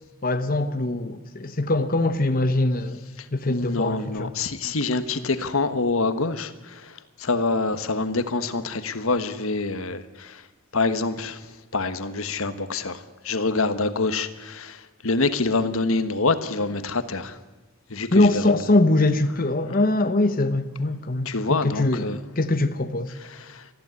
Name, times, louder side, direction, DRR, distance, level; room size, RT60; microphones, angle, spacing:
voice 1, 0.2-3.0 3.3-4.3 18.1-23.1, left 2 dB, 40° left, 1.0 m, -22 dB
voice 2, 3.4-6.5 7.2-10.4 10.7-11.4 11.7-13.0 13.2-14.8 15.0-17.3 17.9-18.5 21.2-22.2 23.5-23.6, left 3 dB, 75° left, 1.4 m, -25 dB
20.5 x 14.5 x 9.5 m
head